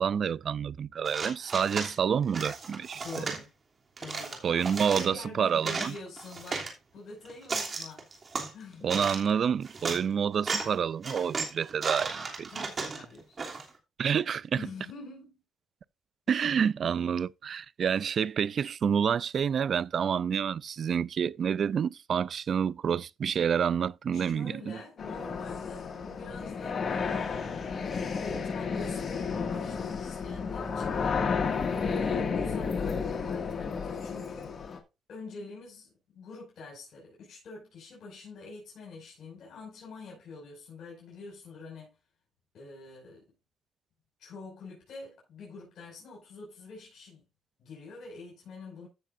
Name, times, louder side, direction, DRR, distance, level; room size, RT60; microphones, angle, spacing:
voice 1, 0.0-3.3 4.4-5.9 8.8-12.7 14.0-14.7 16.3-24.8, right 7 dB, 55° right, 0.4 m, -28 dB
sound 1, 1.0-1.9 2.3-3.4 4.0-5.1 5.5-6.7 7.2-8.5 8.9-9.3 9.6-10.0 10.4-10.7 11.0-13.7, right 4 dB, 40° right, 2.9 m, -35 dB
voice 2, 2.9-3.5 4.0-6.6 6.9-8.1 8.5-8.9 12.5-13.4 14.5-15.4 24.1-31.0 31.7-34.6 35.1-42.0 42.5-43.3 44.2-47.2 47.6-48.9, left 3 dB, 70° left, 5.5 m, -46 dB
sound 2, 25.0-34.8, left 5 dB, 45° left, 2.0 m, -32 dB
15.0 x 6.8 x 2.6 m
cardioid pair, 90°, 0 cm